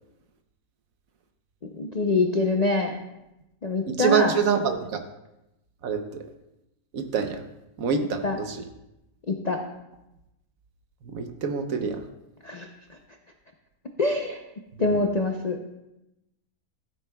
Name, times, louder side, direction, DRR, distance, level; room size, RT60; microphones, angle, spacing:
voice 1, 1.7-2.9 3.6-4.3 8.2-8.4 9.3-9.6 12.4-13.0 14.0-14.4 14.8-15.6, left 3 dB, 50° left, 3 dB, 0.4 m, -25 dB
voice 2, 4.0-5.0 5.8-6.2 6.9-7.4 7.8-8.6 11.1-12.0, right 6 dB, 65° right, 7 dB, 1.2 m, -25 dB
14.0 x 8.3 x 2.3 m, 0.90 s
omnidirectional pair, 1.6 m